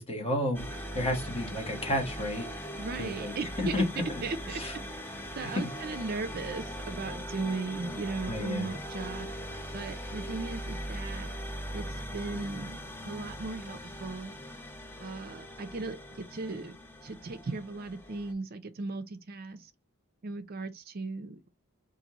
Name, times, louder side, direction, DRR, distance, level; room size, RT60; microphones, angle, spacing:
voice 1, 0.0-2.5 3.0-4.2 4.5-4.7 5.4-5.7 8.3-8.7, left 1 dB, 25° left, 1.3 m, -32 dB
sound 1, 0.5-18.3, equal, 10° left, 0.6 m, -40 dB
voice 2, 2.8-3.8 4.2-4.6 4.9-5.0 5.4-9.3 9.7-11.3 11.7-14.3 15.0-16.8 17.0-19.7 20.2-21.5, right 3 dB, 45° right, 0.5 m, -37 dB
5.3 x 2.6 x 2.9 m
head